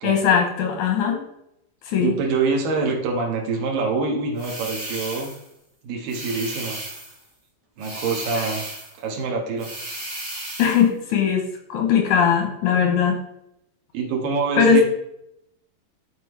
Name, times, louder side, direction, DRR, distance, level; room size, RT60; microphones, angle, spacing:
voice 1, 0.0-1.2 1.9-2.1 8.3-8.5 10.6-13.2 14.6-14.8, left 6 dB, 75° left, 4 dB, 1.9 m, -19 dB
voice 2, 2.0-5.3 5.8-6.8 7.8-8.6 9.0-9.7 13.9-14.8, right 4 dB, 70° right, -1 dB, 2.9 m, -25 dB
sound 1, 4.4-5.5 6.1-7.2 7.8-9.0 9.6-10.8, right 1 dB, 10° right, 2.1 m, -34 dB
12.5 x 4.8 x 3.1 m, 0.79 s
omnidirectional pair, 4.3 m